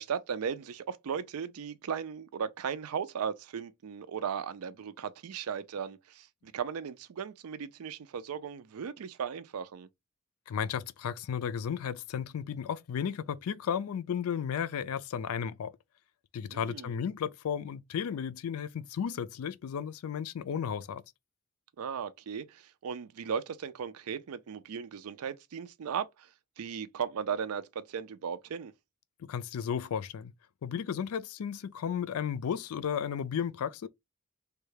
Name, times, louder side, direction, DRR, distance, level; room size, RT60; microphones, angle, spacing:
voice 1, 0.0-9.9 16.5-17.0 21.8-26.3 26.6-28.7, right 7 dB, 90° right, 0.4 m, -37 dB
voice 2, 10.5-15.7 16.3-21.0 29.3-30.3 30.6-33.9, left 7 dB, 80° left, 0.4 m, -34 dB
3.2 x 2.3 x 3.2 m
head